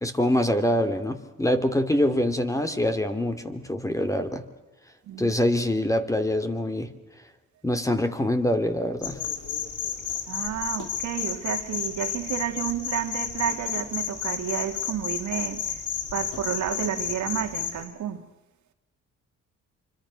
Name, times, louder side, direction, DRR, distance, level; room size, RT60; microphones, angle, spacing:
voice 1, 0.0-4.4 5.2-6.9 7.6-9.2, left 1 dB, 10° left, 2.9 m, -24 dB
sound 1, 9.0-17.8, left 7 dB, 80° left, 3.9 m, -32 dB
voice 2, 10.3-15.8 16.1-18.3, right 10 dB, 70° right, 2.6 m, -31 dB
27.0 x 25.0 x 6.5 m
cardioid pair, 90°, 30 cm